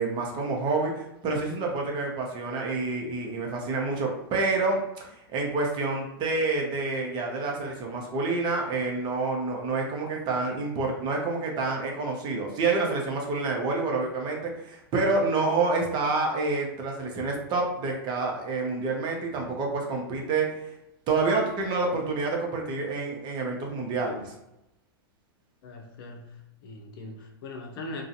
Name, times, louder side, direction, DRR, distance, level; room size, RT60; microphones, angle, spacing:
voice 1, 0.0-20.7 21.1-24.3, right 3 dB, 35° right, 0 dB, 0.7 m, -28 dB
voice 2, 25.6-28.0, left 2 dB, 60° left, 2 dB, 0.6 m, -41 dB
2.5 x 2.3 x 2.7 m, 0.86 s
hypercardioid pair, 110°, 13 cm